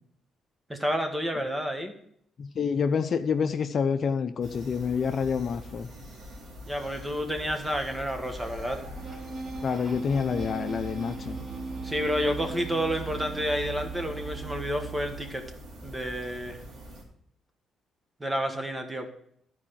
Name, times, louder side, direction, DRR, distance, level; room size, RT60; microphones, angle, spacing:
voice 1, 0.7-1.9 6.7-8.8 11.8-15.4 15.8-16.6 18.2-19.1, equal, 15° right, 5 dB, 1.5 m, -30 dB
voice 2, 2.4-5.9 9.6-11.4, left 6 dB, 50° left, 8 dB, 0.6 m, -27 dB
sound 1, 4.4-17.0, equal, 70° right, 2.6 m, -44 dB
sound 2, 9.0-15.5, right 5 dB, 30° right, 1.8 m, -38 dB
12.0 x 4.9 x 5.8 m, 0.69 s
cardioid pair, 90°, 0 cm